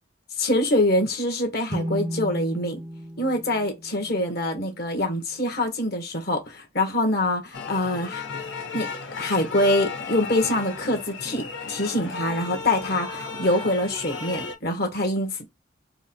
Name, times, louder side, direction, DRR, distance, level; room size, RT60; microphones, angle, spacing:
voice 1, 0.4-2.8 3.2-8.2 8.7-8.9 9.2-15.5, left 1 dB, 60° left, 1.6 m, -25 dB
sound 1, 1.7-5.3, equal, 20° right, 0.5 m, -35 dB
sound 2, 7.5-14.5, left 4 dB, 80° left, 1.5 m, -34 dB
4.7 x 2.4 x 4.3 m
head